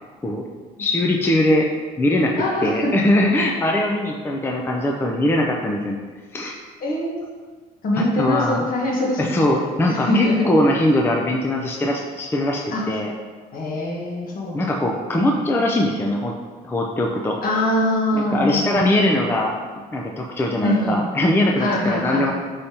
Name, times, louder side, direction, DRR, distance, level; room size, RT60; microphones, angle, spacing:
voice 1, 0.8-1.7 2.0-2.3 2.6-6.0 6.3-6.5 8.0-8.7 9.2-13.1 14.5-16.3 16.6-17.4 18.1-19.6 19.9-22.3, left 1 dB, 15° left, 0 dB, 0.4 m, -21 dB
voice 2, 2.4-2.9 6.8-7.3 7.8-10.5 12.7-12.8 13.5-14.8 15.1-15.3 17.4-19.3 20.6-21.0 21.6-22.3, left 1 dB, 55° left, -2 dB, 1.2 m, -23 dB
5.3 x 3.4 x 2.8 m, 1.4 s
cardioid pair, 110°, 17 cm